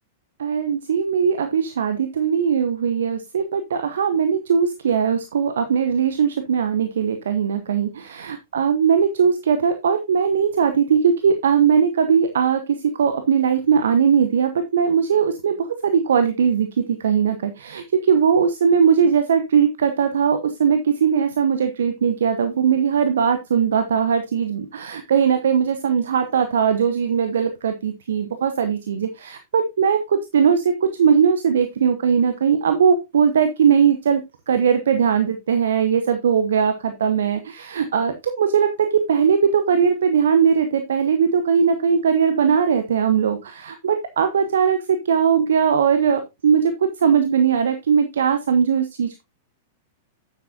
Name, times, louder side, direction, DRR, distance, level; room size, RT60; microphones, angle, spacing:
voice 1, 0.4-34.2 34.5-46.7 47.0-49.2, right 7 dB, 65° right, 8 dB, 1.0 m, -19 dB
9.5 x 8.1 x 2.7 m, 0.22 s
figure-of-eight pair, 95°, 0 cm